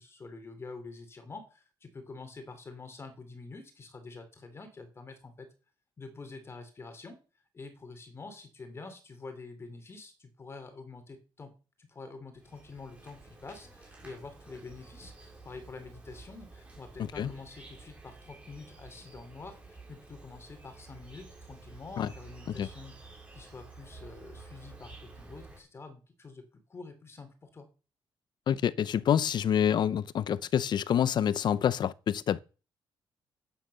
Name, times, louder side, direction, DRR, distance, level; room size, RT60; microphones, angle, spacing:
voice 1, 0.0-5.5 6.0-7.2 7.5-11.5 11.8-23.0 23.3-27.7, left 3 dB, 30° left, 3.6 m, -47 dB
Insect, 12.3-25.6, right 3 dB, 15° right, 6.2 m, -51 dB
voice 2, 28.5-32.4, left 9 dB, 60° left, 0.7 m, -27 dB
11.5 x 9.5 x 6.8 m
cardioid pair, 125°, 9 cm